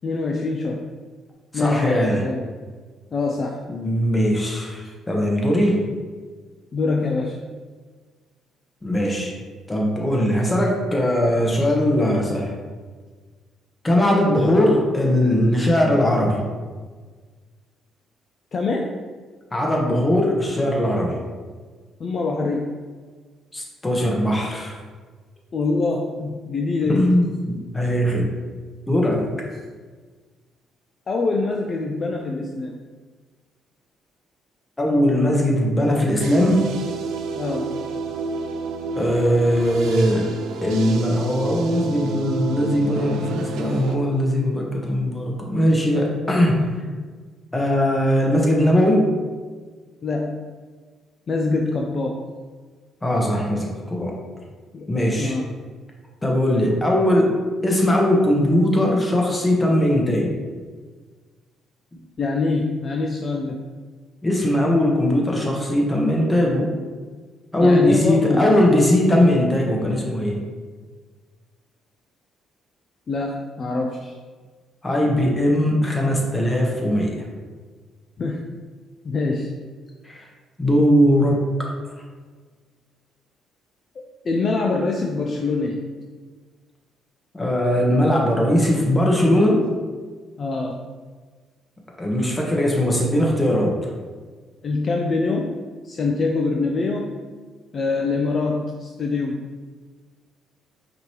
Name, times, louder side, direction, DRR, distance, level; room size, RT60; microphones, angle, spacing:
voice 1, 0.0-0.8 1.5-2.4 3.1-3.6 6.7-7.4 18.5-18.9 22.0-22.7 25.5-27.1 31.1-32.7 37.3-37.7 50.0-50.4 51.3-52.2 54.7-54.9 55.1-55.4 62.2-63.6 67.6-68.5 73.1-74.2 78.2-78.4 79.0-79.5 84.0-85.8 90.4-90.8 94.6-95.5 95.8-97.2 97.7-99.4, left 3 dB, 45° left, 1 dB, 0.4 m, -24 dB
voice 2, 1.5-2.2 3.7-5.9 8.8-9.4 9.7-12.5 13.8-16.5 19.5-21.2 23.5-24.8 26.9-28.3 28.9-29.3 34.8-36.7 39.0-40.3 40.6-46.7 47.5-49.1 53.0-54.1 54.9-55.4 56.2-57.4 57.6-60.4 64.2-66.7 67.5-70.4 74.8-77.2 80.0-80.2 80.6-81.7 87.3-89.7 92.0-93.9, left 1 dB, 15° left, -1 dB, 1.1 m, -20 dB
sound 1, 36.2-44.0, right 4 dB, 80° right, 0.4 m, -29 dB
5.1 x 3.0 x 3.0 m, 1.5 s
supercardioid pair, 75°, 0 cm